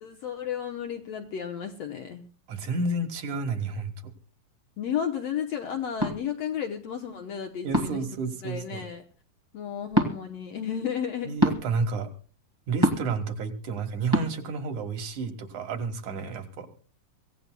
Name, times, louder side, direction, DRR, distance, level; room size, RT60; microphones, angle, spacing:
voice 1, 0.0-2.2 4.8-8.0 8.4-9.0 9.5-11.4, left 8 dB, 70° left, 5 dB, 1.7 m, -33 dB
voice 2, 2.5-4.1 7.6-8.9 11.2-12.1 12.7-16.7, right 3 dB, 65° right, 5 dB, 2.8 m, -31 dB
sound 1, 6.0-6.2 7.7-8.1 9.9-10.1 11.4-11.6 12.8-13.1 14.1-14.3, right 1 dB, 25° right, 0.5 m, -23 dB
25.5 x 16.5 x 2.2 m, 0.38 s
omnidirectional pair, 4.0 m